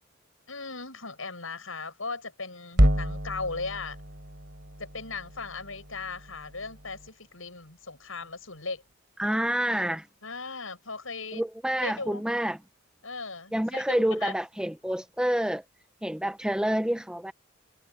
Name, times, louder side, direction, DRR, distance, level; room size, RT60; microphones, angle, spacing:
voice 1, 0.5-4.0 4.8-8.8 10.2-11.4 11.8-12.2 13.0-14.3, left 4 dB, 80° left, 7.8 m, -37 dB
sound 1, 2.7-7.1, equal, 55° right, 3.6 m, -29 dB
voice 2, 9.2-10.1 11.3-12.6 13.5-15.6 16.0-17.3, equal, 5° right, 0.6 m, -28 dB
head